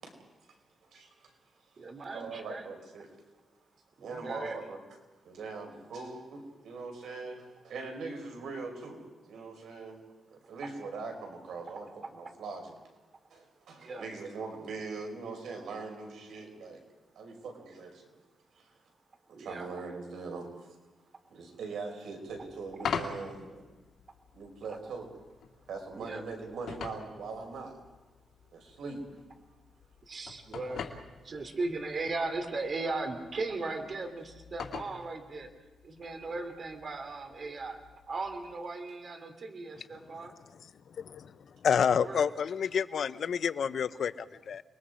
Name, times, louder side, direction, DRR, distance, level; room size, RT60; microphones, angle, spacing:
voice 1, 0.9-1.3 2.1-3.1 4.0-4.8 5.2-10.0 10.3-12.7 13.3-16.8 17.1-18.1 18.6-18.7 19.3-20.5 21.3-23.7 24.3-25.1 25.7-27.8 28.5-29.0 30.7-30.8 36.2-36.3, right 4 dB, 90° right, 2 dB, 5.1 m, -41 dB
voice 2, 1.8-2.6 4.0-4.6 13.8-14.1 19.3-19.7 24.7-24.8 26.0-26.2 30.0-30.8 31.2-35.5 35.8-37.8 38.1-40.3 41.8-42.3, right 3 dB, 40° right, 6 dB, 2.7 m, -37 dB
sound 1, 22.3-38.6, left 6 dB, 75° left, 2.5 m, -45 dB
voice 3, 41.0-41.3 41.6-44.6, left 7 dB, 60° left, 14 dB, 0.7 m, -29 dB
29.5 x 21.5 x 5.0 m, 1.2 s
wide cardioid pair, 145°, 0 cm